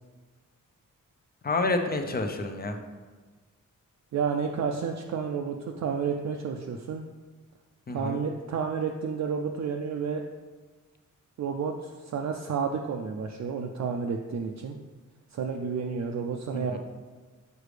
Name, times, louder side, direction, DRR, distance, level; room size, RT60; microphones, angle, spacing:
voice 1, 1.4-2.8 7.9-8.2 16.5-16.8, left 2 dB, 30° left, 5 dB, 0.5 m, -29 dB
voice 2, 4.1-7.0 7.9-10.2 11.4-14.8 15.3-16.8, right 6 dB, 60° right, 2 dB, 0.4 m, -31 dB
6.6 x 4.9 x 3.2 m, 1.3 s
wide cardioid pair, 145°, 32 cm